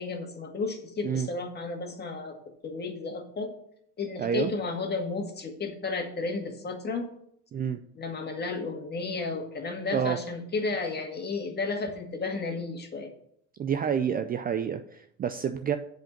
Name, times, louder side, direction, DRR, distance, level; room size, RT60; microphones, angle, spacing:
voice 1, 0.0-2.4 2.6-3.5 4.0-7.1 8.0-13.1, left 3 dB, 30° left, 3 dB, 1.9 m, -33 dB
voice 2, 4.2-4.5 7.5-7.8 9.9-10.2 13.6-15.8, right 8 dB, 25° right, 8 dB, 0.4 m, -28 dB
7.7 x 5.2 x 7.2 m, 0.69 s
supercardioid pair, 110°, 36 cm